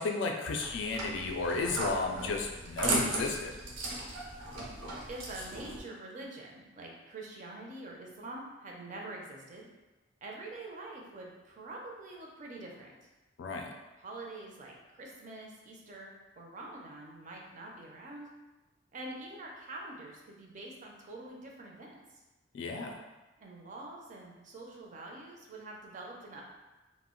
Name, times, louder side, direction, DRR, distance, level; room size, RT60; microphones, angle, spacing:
voice 1, 0.0-3.5 13.4-13.7 22.5-23.0, left 3 dB, 65° left, 2 dB, 0.3 m, -33 dB
sound 1, 0.6-5.8, right 2 dB, 85° right, 0.6 m, -36 dB
voice 2, 5.1-9.6 10.2-12.9 14.0-18.3 18.9-22.2 23.4-26.4, right 2 dB, 40° right, -1 dB, 0.4 m, -45 dB
2.2 x 2.0 x 3.6 m, 1.1 s
head